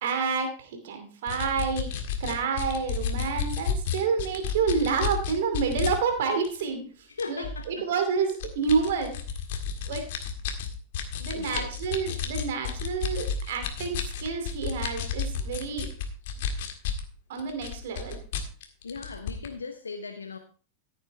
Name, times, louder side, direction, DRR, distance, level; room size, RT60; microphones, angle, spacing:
voice 1, 0.0-1.9 2.2-6.8 7.3-9.1 9.9-10.0 11.2-15.9 17.3-18.2, right 5 dB, 55° right, 2.5 m, -29 dB
sound 1, 1.3-5.9 6.4-6.6 7.2-7.6 8.3-17.1 17.4-19.5, left 7 dB, 55° left, 1.8 m, -31 dB
voice 2, 7.1-7.9 11.3-11.7 18.8-20.4, left 4 dB, 75° left, 0.8 m, -38 dB
14.5 x 8.5 x 3.3 m
figure-of-eight pair, 90°, 0 cm